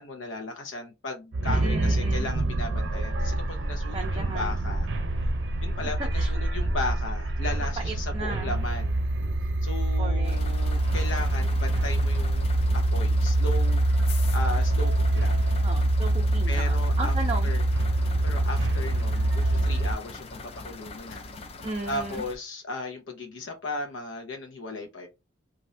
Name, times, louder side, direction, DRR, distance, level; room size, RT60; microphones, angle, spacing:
voice 1, 0.0-4.9 5.6-9.0 9.6-12.5 12.7-13.8 14.3-15.4 16.5-17.1 17.4-17.6 18.2-21.3 21.9-25.1, left 2 dB, 85° left, 0.7 m, -36 dB
sound 1, 1.3-19.9, right 1 dB, 75° right, 0.6 m, -25 dB
voice 2, 1.5-2.3 3.9-4.5 6.1-6.3 7.8-8.5 10.0-10.4 15.6-17.5 21.6-22.2, right 3 dB, 30° right, 0.4 m, -35 dB
sound 2, 10.2-22.4, left 3 dB, 30° left, 0.4 m, -42 dB
3.1 x 2.5 x 2.6 m
head